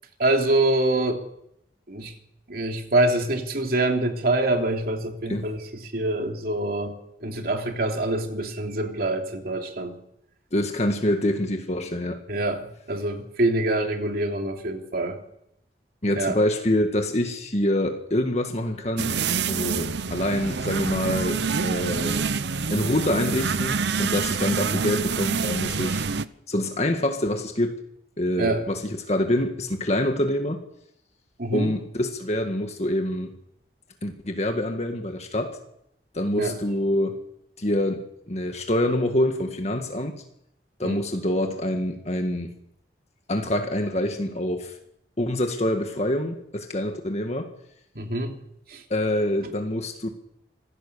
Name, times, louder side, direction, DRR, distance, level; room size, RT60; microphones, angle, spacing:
voice 1, 0.2-1.2 1.9-2.1 2.5-10.0 12.3-15.2 16.1-16.4 28.4-28.6 31.4-31.7 36.4-36.6 40.8-41.0 47.9-48.4 48.7-48.8, right 2 dB, 60° right, 3.1 m, -25 dB
voice 2, 10.5-12.2 16.0-19.2 19.5-22.2 22.7-26.1 26.5-27.8 28.2-30.6 31.5-33.3 34.0-35.6 36.1-37.2 37.6-40.2 40.8-42.5 43.3-44.8 45.2-47.5 48.9-50.1, left 1 dB, 40° left, 1.8 m, -26 dB
sound 1, 19.0-26.3, right 5 dB, 75° right, 0.8 m, -26 dB
26.0 x 16.5 x 7.0 m
head